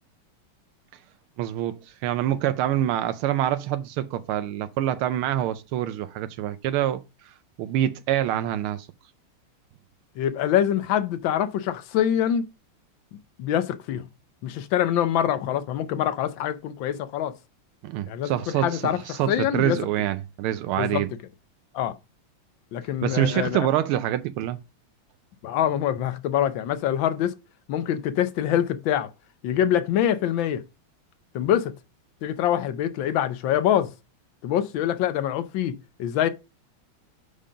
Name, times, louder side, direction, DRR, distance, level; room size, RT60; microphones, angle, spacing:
voice 1, 1.4-8.9 17.8-21.1 23.0-24.6, right 12 dB, 85° right, 1.4 m, -26 dB
voice 2, 10.2-12.5 13.4-14.0 14.4-17.3 18.1-19.0 19.3-19.8 20.8-21.0 21.7-21.9 22.7-23.7 25.4-27.3 27.7-29.1 29.4-30.6 31.3-31.7 32.2-33.9 34.4-36.3, left 10 dB, 70° left, 1.3 m, -25 dB
5.2 x 5.1 x 5.5 m
omnidirectional pair, 2.3 m